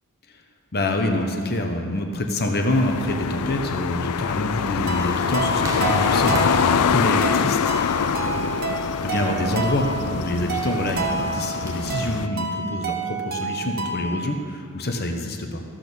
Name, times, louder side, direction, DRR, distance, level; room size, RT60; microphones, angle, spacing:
voice 1, 0.7-6.3 6.7-15.6, left 1 dB, 45° left, 3 dB, 1.1 m, -26 dB
sound 1, 2.7-12.3, left 7 dB, 75° left, 0.4 m, -25 dB
sound 2, 3.0-12.1, equal, 15° right, 1.2 m, -39 dB
sound 3, 4.9-14.3, right 4 dB, 45° right, 1.1 m, -29 dB
14.5 x 6.3 x 7.1 m, 2.2 s
head